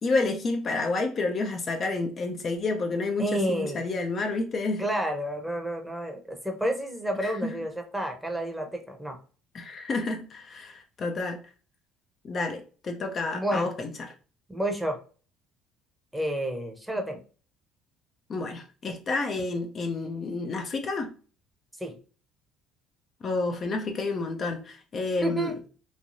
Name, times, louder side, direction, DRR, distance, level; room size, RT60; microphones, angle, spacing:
voice 1, 0.0-4.8 7.2-7.6 9.5-11.4 12.2-14.1 18.3-21.1 23.2-25.5, left 3 dB, 45° left, 0.5 m, -30 dB
voice 2, 3.2-3.8 4.8-9.2 13.3-13.7 14.5-15.0 16.1-17.2 21.8-21.9 25.2-25.5, right 1 dB, 5° right, 0.8 m, -30 dB
3.1 x 2.2 x 2.6 m
supercardioid pair, 75°, 0 cm